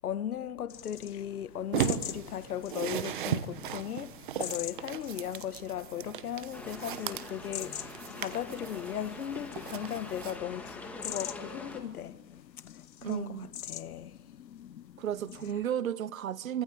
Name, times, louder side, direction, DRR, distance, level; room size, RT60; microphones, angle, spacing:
voice 1, 0.0-12.2 12.7-14.1, left 10 dB, 60° left, 1.4 m, -37 dB
sound 1, 0.7-15.5, left 11 dB, 85° left, 0.9 m, -46 dB
sound 2, 1.7-10.4, right 10 dB, 30° right, 1.1 m, -37 dB
sound 3, 6.5-11.8, left 2 dB, 5° left, 2.0 m, -45 dB
voice 2, 13.0-13.5 15.0-16.6, right 10 dB, 55° right, 1.0 m, -33 dB
27.0 x 24.5 x 8.6 m
hypercardioid pair, 165°, 50 cm